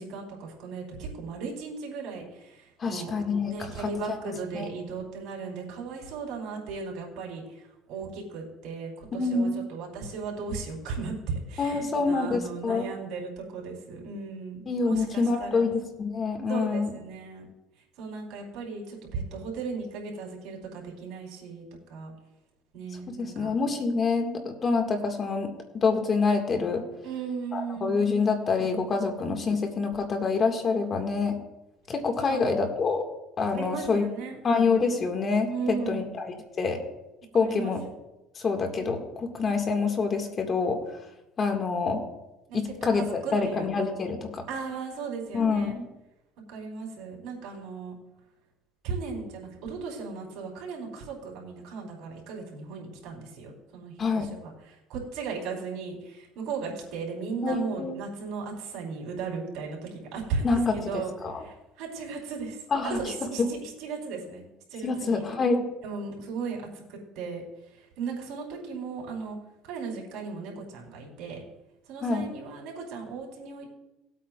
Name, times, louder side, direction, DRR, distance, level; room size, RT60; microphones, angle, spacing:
voice 1, 0.0-3.1 3.4-15.7 16.5-17.5 18.0-22.1 22.7-23.5 27.0-28.1 32.3-32.7 33.5-34.5 35.5-36.1 37.3-37.7 42.5-43.7 44.5-45.7 46.5-47.9 48.8-64.4 64.7-65.2 65.8-69.4 69.7-71.4 71.9-73.7, right 5 dB, 70° right, -1 dB, 3.9 m, -36 dB
voice 2, 2.8-3.7 4.1-4.2 4.5-4.7 9.1-9.6 11.6-12.9 14.7-16.9 23.2-25.5 25.8-26.8 27.5-31.4 31.9-33.0 33.4-34.1 34.4-36.8 37.3-37.8 38.4-40.8 41.4-42.0 42.5-44.4 45.3-45.9 54.0-54.3 57.4-57.9 60.4-61.3 62.7-63.0 64.8-65.6 72.0-72.3, left 4 dB, 35° left, 4 dB, 1.9 m, -26 dB
19.5 x 8.5 x 2.4 m, 0.98 s
supercardioid pair, 100°, 0 cm